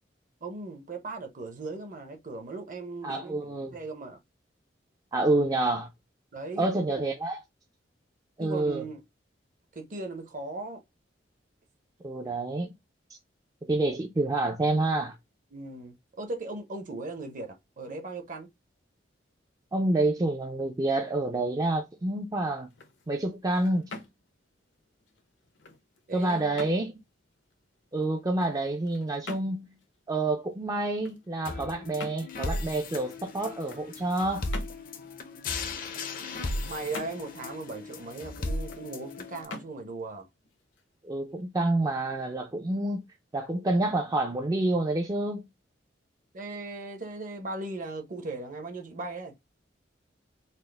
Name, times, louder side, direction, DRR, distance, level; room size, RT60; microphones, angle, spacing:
voice 1, 0.4-4.2 6.3-6.8 8.4-9.0 9.7-10.8 15.5-18.5 26.1-26.7 36.6-40.3 46.3-49.3, right 2 dB, 45° right, 0.8 m, -38 dB
voice 2, 3.0-3.8 5.1-5.9 6.6-7.4 8.4-8.9 12.0-12.7 13.7-15.2 19.7-22.7 23.1-23.8 26.1-26.9 27.9-29.8 30.1-34.5 41.0-43.0 43.3-45.5, right 2 dB, 20° right, 0.4 m, -28 dB
sound 1, 22.6-41.4, left 3 dB, 80° left, 0.8 m, -48 dB
sound 2, 31.5-39.5, left 2 dB, 50° left, 0.6 m, -36 dB
4.2 x 2.0 x 3.3 m
head